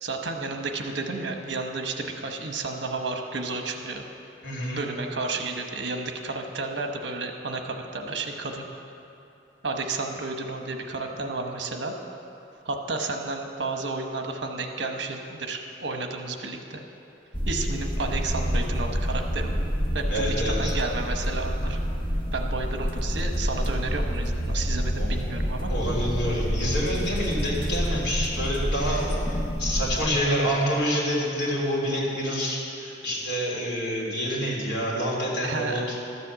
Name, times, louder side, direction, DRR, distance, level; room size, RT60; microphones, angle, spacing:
voice 1, 0.0-4.0 4.8-8.6 9.6-11.9 12.6-16.8 17.5-19.6 19.9-21.8 22.3-25.7 35.4-35.8, right 3 dB, 70° right, 4 dB, 1.1 m, -32 dB
voice 2, 4.4-4.8 20.1-20.7 25.0-25.1 25.7-36.0, equal, 65° left, -5 dB, 3.3 m, -27 dB
sound 1, 17.3-30.0, equal, 25° left, 1.1 m, -28 dB
13.0 x 7.6 x 7.5 m, 2.8 s
head